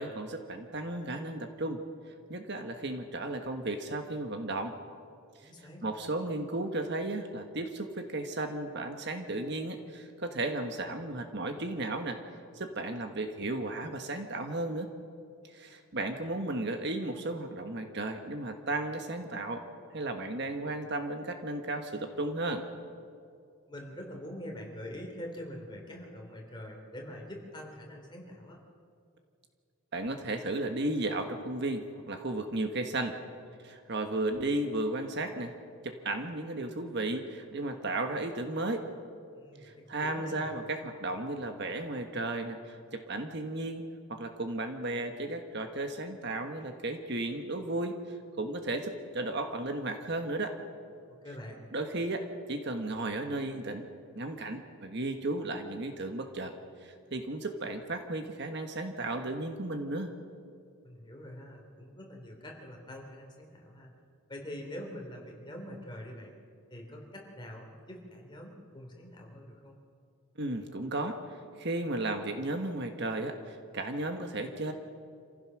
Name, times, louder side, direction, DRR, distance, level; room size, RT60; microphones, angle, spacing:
voice 1, 0.0-1.8 2.3-4.8 5.4-5.5 5.8-12.2 12.5-14.9 15.5-19.6 19.9-22.7 29.9-33.2 33.6-35.5 35.8-38.9 39.6-50.5 51.7-53.9 54.1-56.5 56.8-60.1 70.4-74.7, right 2 dB, 50° right, 6 dB, 1.4 m, -34 dB
voice 2, 5.4-5.8 23.7-28.6 39.3-40.5 51.0-51.6 60.8-63.9 64.3-66.4 66.7-69.8, equal, 20° left, 0 dB, 3.3 m, -45 dB
27.0 x 15.5 x 6.2 m, 2.3 s
head